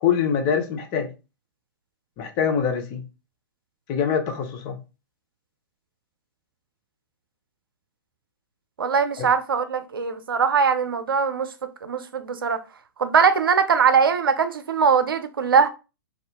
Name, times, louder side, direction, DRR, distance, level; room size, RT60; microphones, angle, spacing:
voice 1, 0.0-1.1 2.2-3.0 3.9-4.8 9.2-9.3, left 7 dB, 35° left, 0.7 m, -24 dB
voice 2, 8.8-11.5 11.8-12.6 13.0-15.7, right 6 dB, 75° right, 0.5 m, -21 dB
2.7 x 2.4 x 3.5 m
figure-of-eight pair, 110°, 12 cm